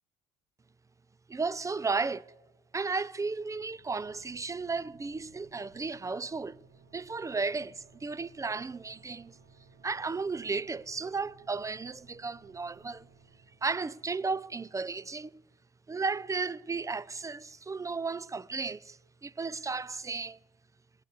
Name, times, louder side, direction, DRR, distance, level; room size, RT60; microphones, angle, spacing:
voice 1, 1.3-2.3 2.7-6.6 6.9-9.4 9.8-13.1 13.6-15.4 15.9-20.4, right 4 dB, 15° right, 0.4 m, -34 dB
sound 1, 3.5-14.9, right 5 dB, 60° right, 2.4 m, -61 dB
17.0 x 8.2 x 9.2 m
hypercardioid pair, 65°, 20 cm